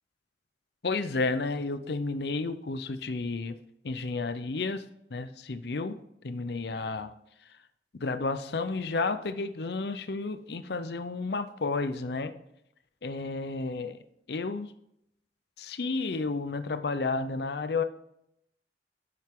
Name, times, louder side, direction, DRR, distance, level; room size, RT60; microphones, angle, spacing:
voice 1, 0.8-3.6 3.8-4.8 5.1-6.0 6.2-7.1 8.0-12.3 13.0-14.0 14.3-14.7 15.6-17.8, left 3 dB, 60° left, 11 dB, 0.6 m, -31 dB
12.0 x 7.5 x 3.7 m, 0.78 s
head